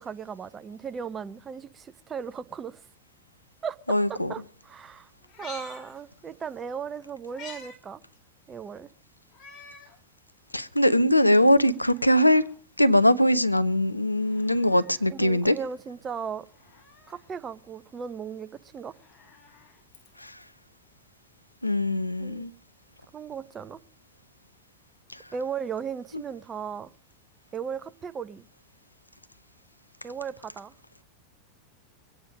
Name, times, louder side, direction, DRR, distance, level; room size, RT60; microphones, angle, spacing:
voice 1, 0.0-2.8 3.6-5.1 5.4-8.0 8.5-8.9 15.1-16.4 17.1-18.9 22.2-22.5 23.1-23.8 25.3-26.9 27.5-28.4 30.0-30.7, right 6 dB, 20° right, 0.8 m, -36 dB
voice 2, 3.9-4.3 10.5-12.5 12.8-15.6 20.2-20.3 21.6-22.5, left 1 dB, 85° left, 0.6 m, -21 dB
Meow, 5.2-6.6 6.9-7.8 8.1-8.2 9.3-10.0 10.5-10.6 11.6-12.6 14.1-15.1 16.5-17.3 18.8-20.4 21.6-21.7, left 5 dB, 30° left, 3.0 m, -49 dB
23.5 x 8.8 x 5.0 m
figure-of-eight pair, 90°, 0 cm